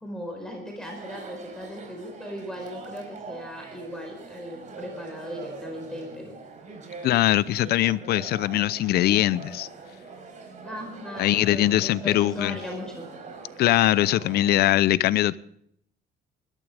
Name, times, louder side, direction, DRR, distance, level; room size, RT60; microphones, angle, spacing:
voice 1, 0.0-6.4 10.6-13.1, equal, 5° left, 4.6 m, -38 dB
Chatter, 0.7-14.8, right 4 dB, 45° right, 4.6 m, -43 dB
voice 2, 7.0-9.7 11.2-12.6 13.6-15.4, left 14 dB, 70° left, 0.7 m, -22 dB
21.0 x 12.5 x 3.5 m
cardioid pair, 110°, 17 cm